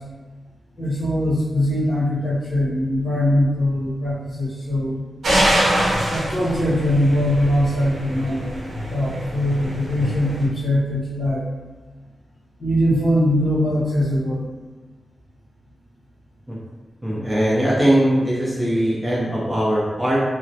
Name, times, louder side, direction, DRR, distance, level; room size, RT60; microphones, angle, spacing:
voice 1, 0.8-5.0 6.1-8.4 8.9-11.4 12.6-14.4, left 1 dB, 55° left, -8 dB, 0.9 m, -21 dB
sound 1, 5.2-10.5, right 1 dB, 75° right, 0.6 m, -24 dB
voice 2, 17.0-20.2, equal, 10° right, -6 dB, 0.4 m, -20 dB
2.3 x 2.0 x 2.6 m, 1.2 s
wide cardioid pair, 170°, 0 cm